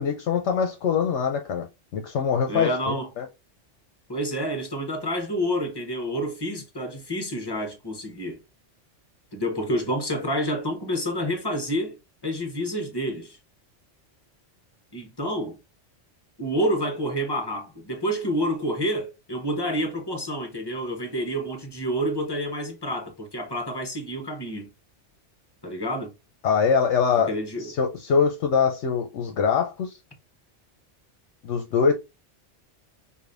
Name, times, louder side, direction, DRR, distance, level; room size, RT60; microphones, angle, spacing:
voice 1, 0.0-1.7 1.9-3.2 26.4-27.3 27.6-30.0 31.4-31.9, left 6 dB, 75° left, 0.9 m, -23 dB
voice 2, 2.5-3.1 4.1-8.4 9.3-12.0 12.2-13.4 14.9-15.6 16.4-24.7 25.6-26.1 27.3-27.7, equal, 20° left, 1.0 m, -28 dB
4.9 x 2.7 x 2.5 m
omnidirectional pair, 1.2 m